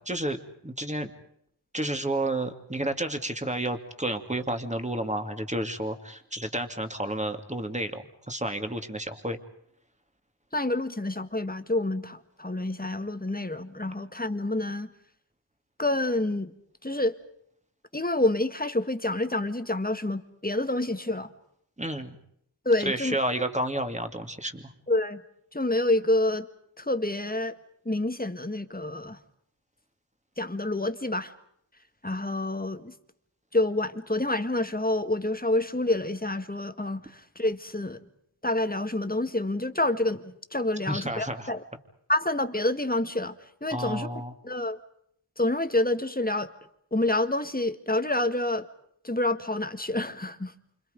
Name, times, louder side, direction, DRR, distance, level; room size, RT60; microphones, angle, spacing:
voice 1, 0.1-1.1 1.7-9.4 21.8-22.2 22.8-24.7 40.9-41.5 43.7-44.3, right 1 dB, 15° right, 7 dB, 2.6 m, -31 dB
voice 2, 10.5-14.9 15.8-16.5 16.8-17.2 17.9-21.3 22.7-23.2 24.9-25.2 25.5-26.5 26.8-27.5 27.9-29.2 30.4-31.3 32.0-32.9 33.5-38.0 38.4-41.6 42.1-43.3 43.6-44.1 44.4-44.8 45.4-46.5 46.9-48.7 49.0-50.5, left 2 dB, 20° left, 8 dB, 1.8 m, -28 dB
28.5 x 27.0 x 5.3 m, 0.70 s
wide cardioid pair, 55°, 44 cm